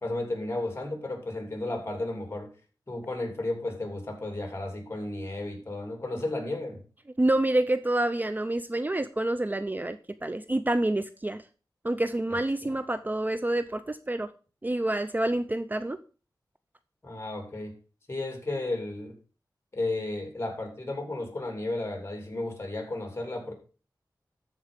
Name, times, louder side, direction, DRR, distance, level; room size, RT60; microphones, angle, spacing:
voice 1, 0.0-2.5 2.9-6.8 12.3-12.7 17.0-17.7 18.1-19.1 19.7-23.5, left 2 dB, 35° left, 4 dB, 3.0 m, -33 dB
voice 2, 7.2-11.4 11.8-14.3 14.6-16.0, right 1 dB, 25° right, 12 dB, 0.5 m, -27 dB
13.5 x 4.6 x 5.2 m, 0.36 s
wide cardioid pair, 65°, 8 cm